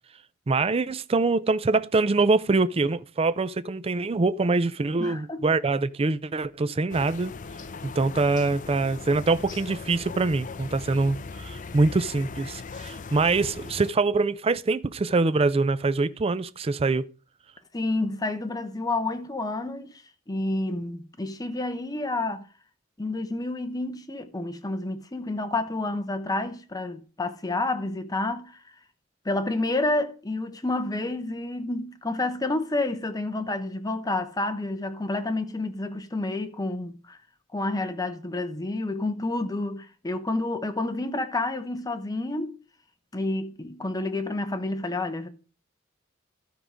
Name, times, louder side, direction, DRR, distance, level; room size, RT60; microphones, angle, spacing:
voice 1, 0.5-7.3 7.8-17.1, right 3 dB, 30° right, 0.4 m, -24 dB
voice 2, 5.0-5.4 17.7-20.0 20.3-22.5 23.0-28.6 29.2-37.2 37.5-42.5 43.1-45.3, left 2 dB, 20° left, 0.8 m, -29 dB
sound 1, 6.9-13.9, left 4 dB, 40° left, 0.5 m, -39 dB
12.5 x 4.7 x 5.0 m
head